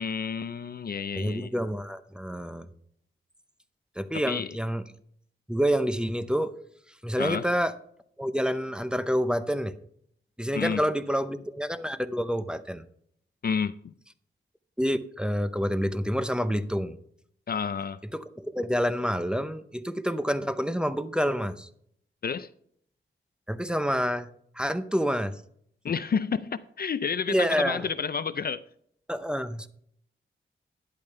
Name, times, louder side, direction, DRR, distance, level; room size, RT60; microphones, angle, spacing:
voice 1, 0.0-1.5 4.1-4.6 7.2-7.5 10.5-10.8 13.4-13.9 17.5-18.0 22.2-22.5 25.8-28.6, left 6 dB, 50° left, 0.5 m, -30 dB
voice 2, 1.2-2.7 4.0-4.8 5.5-6.5 7.0-7.7 8.2-9.7 10.4-12.8 14.8-17.0 18.1-21.7 23.5-24.3 24.5-25.3 27.3-27.9 29.1-29.7, equal, 5° right, 0.6 m, -28 dB
12.0 x 10.5 x 3.3 m
wide cardioid pair, 115°, 21 cm